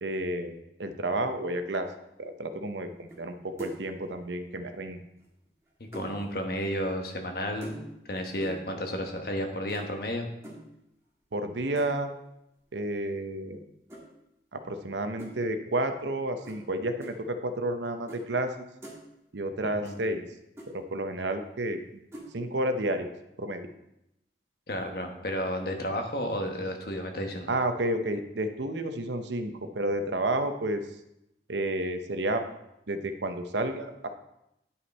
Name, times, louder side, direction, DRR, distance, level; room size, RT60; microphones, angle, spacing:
voice 1, 0.0-0.5 0.8-1.9 2.2-5.0 11.3-12.1 12.7-13.6 14.5-18.7 19.3-20.2 20.7-21.8 22.3-23.1 23.4-23.7 27.5-30.8 31.5-32.4 32.9-34.1, right 1 dB, 80° right, 8 dB, 0.8 m, -31 dB
sound 1, 3.1-3.3 3.6-3.9 5.2-6.2 7.6-8.1 8.4-8.7 9.7-9.9 10.4-10.7 11.8-12.1 13.9-14.0 15.2-15.3 16.4-16.6 17.0-17.1 18.1-18.2 18.5-19.0 19.8-20.0 20.2-20.3 20.6-20.7 22.1-22.3, right 1 dB, 15° right, 1.8 m, -43 dB
voice 2, 5.8-7.8 8.1-10.3 19.6-20.0 24.7-27.5, equal, 55° left, 3 dB, 1.2 m, -32 dB
9.7 x 5.6 x 4.2 m, 0.85 s
head